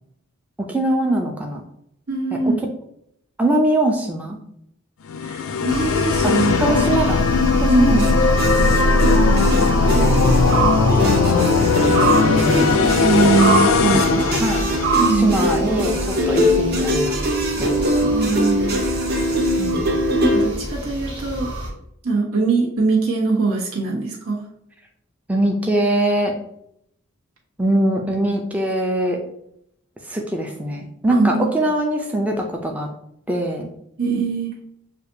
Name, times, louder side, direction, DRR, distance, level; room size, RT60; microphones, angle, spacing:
voice 1, 0.7-1.6 2.4-2.5 3.4-4.4 6.2-6.3 6.6-7.2 7.5-8.0 9.9-10.6 12.2-12.8 14.4-14.6 15.2-17.2 17.6-17.8 19.6-19.9 25.3-26.3 27.6-29.2 30.1-32.9 33.3-33.7, right 1 dB, 5° right, 1 dB, 0.4 m, -22 dB
voice 2, 2.1-2.6 5.2-6.9 7.7-8.1 12.5-12.6 13.0-14.2 15.0-15.4 18.0-18.8 20.2-21.5 22.0-24.4 31.1-31.5 34.0-34.5, right 3 dB, 80° right, -3 dB, 1.3 m, -21 dB
sound 1, 5.1-15.3, left 4 dB, 65° left, 0.4 m, -18 dB
sound 2, 5.7-21.7, right 3 dB, 25° right, 1.1 m, -27 dB
sound 3, 8.0-20.5, equal, 45° right, 0.8 m, -22 dB
6.5 x 2.5 x 2.7 m, 0.75 s
head